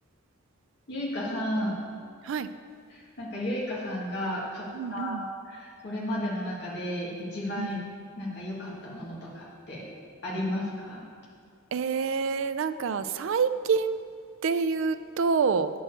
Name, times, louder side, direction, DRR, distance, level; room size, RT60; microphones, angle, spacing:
voice 1, 0.9-1.8 2.9-5.2 5.4-7.8 8.1-9.9 10.2-11.0, left 1 dB, 50° left, -6 dB, 1.6 m, -33 dB
voice 2, 4.7-5.2 7.6-7.8 11.7-14.0 14.4-15.7, right 5 dB, 65° right, 11 dB, 0.3 m, -27 dB
8.8 x 4.6 x 6.5 m, 2.2 s
head